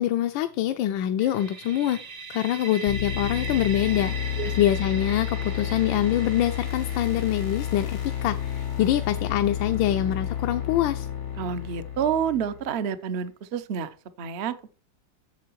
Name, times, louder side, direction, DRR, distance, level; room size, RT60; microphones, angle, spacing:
voice 1, 0.0-2.0 2.3-4.1 4.6-11.1, left 12 dB, 85° left, 1.3 m, -25 dB
sound 1, 1.2-10.9, right 4 dB, 80° right, 2.0 m, -40 dB
sound 2, 2.9-12.7, left 9 dB, 65° left, 0.7 m, -31 dB
voice 2, 11.4-14.5, right 7 dB, 65° right, 0.6 m, -29 dB
8.4 x 6.8 x 4.5 m
omnidirectional pair, 2.0 m